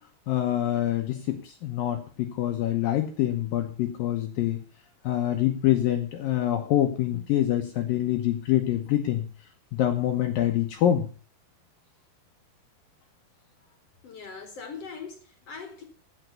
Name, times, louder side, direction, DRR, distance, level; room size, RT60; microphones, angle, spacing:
voice 1, 0.3-4.6 5.0-9.3 9.7-11.1, left 12 dB, 70° left, 2.5 m, -25 dB
voice 2, 14.0-15.8, left 5 dB, 45° left, 2.5 m, -41 dB
15.5 x 5.9 x 6.7 m
omnidirectional pair, 4.6 m